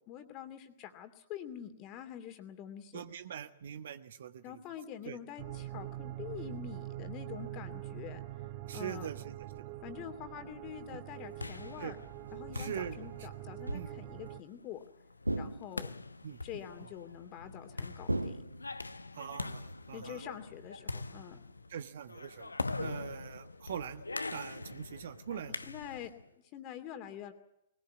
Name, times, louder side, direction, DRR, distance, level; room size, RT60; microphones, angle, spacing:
voice 1, 0.1-3.0 4.4-8.2 8.7-9.1 9.8-12.0 12.3-14.8 15.4-15.9 16.4-18.5 19.9-21.4 25.3-27.3, left 10 dB, 30° left, 8 dB, 2.6 m, -46 dB
voice 2, 2.9-4.6 5.0-5.2 8.7-9.7 10.9-11.0 11.8-11.9 12.5-13.1 13.7-13.9 16.2-16.6 19.1-20.2 21.7-22.5 22.8-24.0 24.3-25.6, right 8 dB, 55° right, 10 dB, 1.4 m, -43 dB
sound 1, 5.4-14.4, right 14 dB, 40° right, 0.8 m, -44 dB
sound 2, 11.0-26.2, left 3 dB, 80° left, 0.9 m, -43 dB
sound 3, 13.7-14.2 15.2-16.0 18.1-19.0, right 1 dB, 90° right, 0.9 m, -36 dB
20.5 x 19.5 x 8.3 m, 0.81 s
figure-of-eight pair, 115°, 0 cm